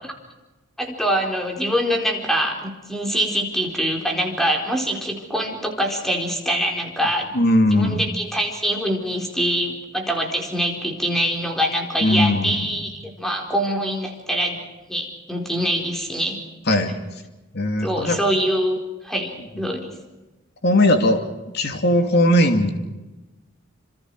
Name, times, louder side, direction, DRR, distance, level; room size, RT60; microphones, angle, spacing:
voice 1, 0.8-7.3 7.7-14.6 14.9-16.4 17.8-19.9, equal, ahead, 1 dB, 4.3 m, -24 dB
voice 2, 7.3-8.0 12.0-12.8 16.7-16.9 17.5-18.2 20.6-21.2 21.5-22.7, left 1 dB, 55° left, 5 dB, 2.7 m, -18 dB
27.5 x 27.0 x 4.8 m, 1.1 s
head